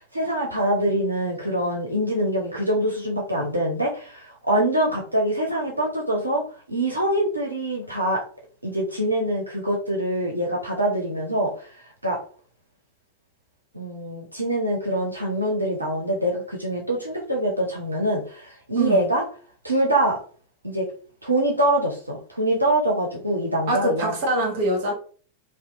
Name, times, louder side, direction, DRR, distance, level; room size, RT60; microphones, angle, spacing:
voice 1, 0.1-6.4 6.7-8.2 8.6-11.7 12.0-12.2 13.7-19.2 19.6-20.2 20.6-20.9 21.2-24.2, right 1 dB, 85° right, 0.5 m, -24 dB
voice 2, 18.7-19.0 23.7-24.9, right 1 dB, 50° right, 0.9 m, -24 dB
2.7 x 2.1 x 2.3 m
figure-of-eight pair, 90°, 0 cm